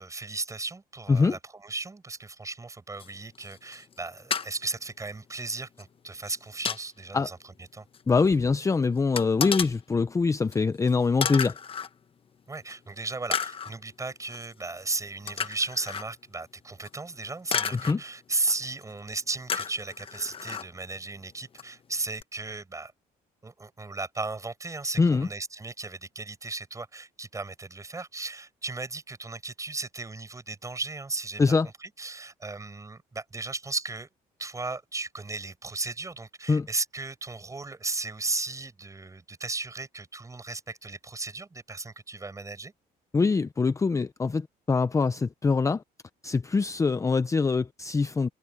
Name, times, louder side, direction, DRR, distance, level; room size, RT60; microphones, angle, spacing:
voice 1, 0.0-7.4 7.7-7.9 12.5-22.9 23.4-31.5 31.8-34.1 34.4-42.7, right 3 dB, 20° right, 5.9 m, -35 dB
sound 1, 3.0-3.1 3.4-4.0 4.3-4.5 5.8-5.9 6.2-6.8 7.9-8.0 8.3-8.4 9.2-9.7 10.5-10.6 10.9-11.0 11.2-11.9 12.7-12.8 13.3-13.7 14.3-14.5 15.3-16.1 16.8-17.0 17.5-17.9 18.5-18.8 19.5-20.7 21.6-21.7 22.2-22.3, left 6 dB, 35° left, 1.0 m, -32 dB
voice 2, 8.1-11.6 17.7-18.0 25.0-25.3 31.4-31.7 36.5-36.7 43.1-45.8 46.2-48.3, left 4 dB, 20° left, 0.6 m, -24 dB
cardioid pair, 110°, 17 cm